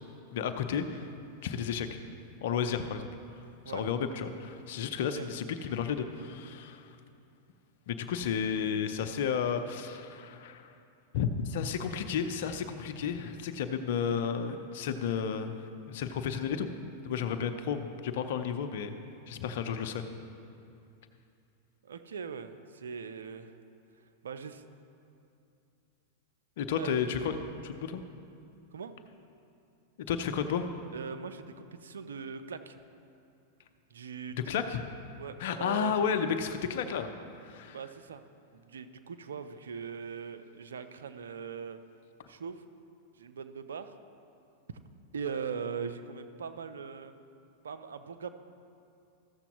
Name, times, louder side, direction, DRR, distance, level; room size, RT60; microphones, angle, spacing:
voice 1, 0.3-1.1 1.4-2.0 2.4-3.1 3.7-6.9 7.9-10.7 11.1-15.6 15.9-16.7 17.0-19.0 19.3-20.0 26.6-27.4 27.6-28.0 30.1-30.7 34.5-34.8 35.4-37.1 37.4-37.8, left 7 dB, 65° left, 8 dB, 0.7 m, -32 dB
voice 2, 21.8-23.5 24.2-24.7 26.8-27.0 28.7-28.9 30.9-32.8 33.9-34.7 35.2-36.0 37.7-38.2 38.5-41.8 42.3-42.6 43.2-43.9 45.1-47.1 47.6-48.3, right 6 dB, 85° right, 10 dB, 0.6 m, -40 dB
14.5 x 7.0 x 3.0 m, 2.6 s
hypercardioid pair, 105°, 0 cm